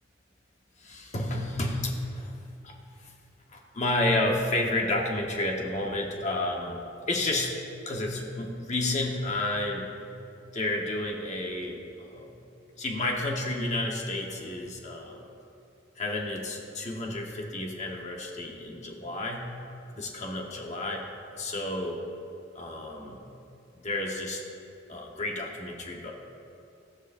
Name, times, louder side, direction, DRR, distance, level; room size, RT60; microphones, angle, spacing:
voice 1, 0.8-2.3 2.6-3.1 3.5-6.8 7.1-7.5 7.8-9.9 10.5-12.3 12.8-15.2 16.0-19.5 19.9-21.0 21.3-22.0 22.5-23.2 23.8-24.4 24.9-26.1, left 2 dB, 40° left, 0 dB, 1.3 m, -31 dB
17.0 x 14.0 x 2.7 m, 2.6 s
head